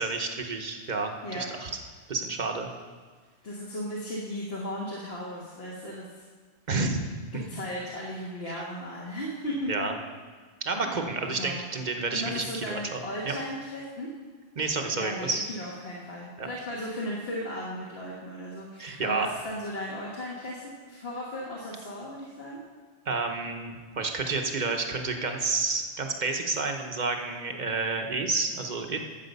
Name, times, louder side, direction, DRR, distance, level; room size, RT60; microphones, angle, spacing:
voice 1, 0.0-1.7 2.1-2.7 6.7-7.2 8.5-8.6 9.7-9.9 10.6-13.3 14.6-15.5 16.4-16.5 18.8-19.3 23.1-29.0, right 3 dB, 40° right, 4 dB, 1.0 m, -30 dB
voice 2, 3.4-6.2 7.3-9.9 10.8-11.6 11.9-14.1 14.9-22.6, left 1 dB, 60° left, -4 dB, 1.8 m, -36 dB
12.5 x 7.5 x 5.4 m, 1.5 s
omnidirectional pair, 1.2 m